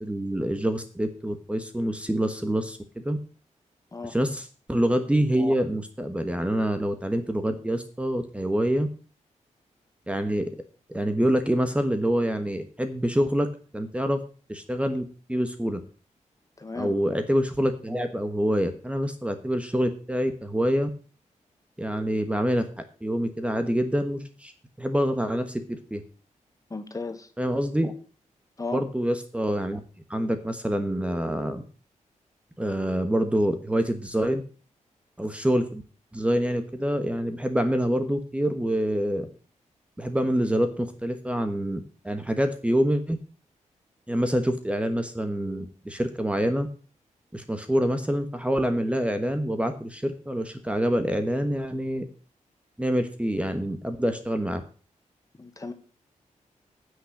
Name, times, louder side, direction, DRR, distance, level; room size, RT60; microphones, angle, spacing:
voice 1, 0.0-3.2 4.0-8.9 10.1-10.5 10.9-13.5 13.7-14.2 14.5-15.0 15.3-15.8 16.7-20.9 21.8-22.7 23.0-24.5 24.8-26.0 27.4-27.9 28.7-29.8 30.1-31.6 32.6-34.4 35.2-35.8 36.1-39.3 40.0-43.2 44.1-46.7 47.3-52.0 52.8-54.6, equal, 10° right, 8 dB, 1.2 m, -26 dB
voice 2, 16.6-16.9 26.7-27.3 28.6-28.8 55.4-55.7, left 3 dB, 25° left, 8 dB, 1.6 m, -34 dB
9.5 x 6.4 x 8.3 m, 0.39 s
wide cardioid pair, 100°, 13 cm